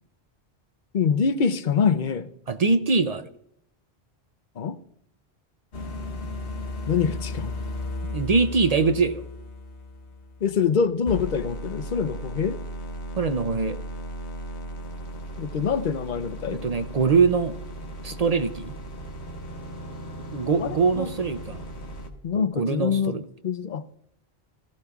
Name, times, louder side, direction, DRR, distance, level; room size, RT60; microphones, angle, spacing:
voice 1, 0.9-2.3 4.6-4.8 6.9-7.5 10.4-12.6 15.4-16.6 20.6-21.1 22.2-23.2 23.4-23.8, left 6 dB, 55° left, 12 dB, 0.7 m, -25 dB
voice 2, 2.5-3.3 8.0-9.2 13.2-13.8 16.5-17.6 18.0-18.7 20.3-21.7 22.4-23.2, right 4 dB, 45° right, 10 dB, 0.5 m, -23 dB
sound 1, 5.7-10.7 11.1-22.1, equal, 90° left, 1.6 m, -36 dB
17.0 x 14.5 x 2.4 m, 0.73 s
omnidirectional pair, 1.1 m